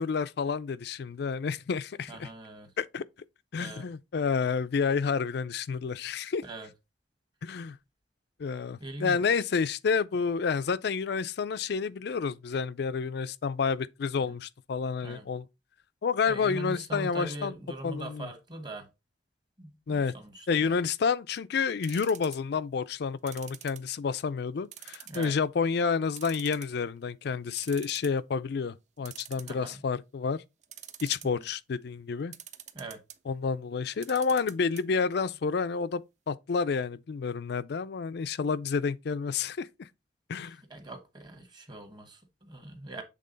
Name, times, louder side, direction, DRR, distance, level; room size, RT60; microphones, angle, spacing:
voice 1, 0.0-2.3 2.8-3.0 3.5-6.4 7.4-7.8 8.4-15.5 16.0-17.5 17.8-18.3 19.9-20.1 20.5-30.4 31.0-32.3 33.3-36.0 36.3-39.9 40.3-40.6, left 5 dB, 60° left, 0.4 m, -29 dB
voice 2, 2.1-2.7 3.6-3.9 6.4-6.7 8.8-9.2 14.2-14.3 15.0-15.2 16.3-18.9 19.6-20.8 25.1-25.3 29.4-29.8 31.2-31.3 32.7-33.0 40.4-40.5 40.7-43.0, right 1 dB, 25° right, 1.3 m, -41 dB
sound 1, 21.8-22.6 23.3-24.2 24.7-25.4 25.7-25.8 26.2-27.0 27.3-27.4 27.6-28.2 29.0-29.9 30.6-31.5 32.3-33.2 33.9-34.8 35.1-35.2 35.5-35.6, right 10 dB, 40° right, 0.6 m, -45 dB
7.5 x 3.6 x 3.9 m
head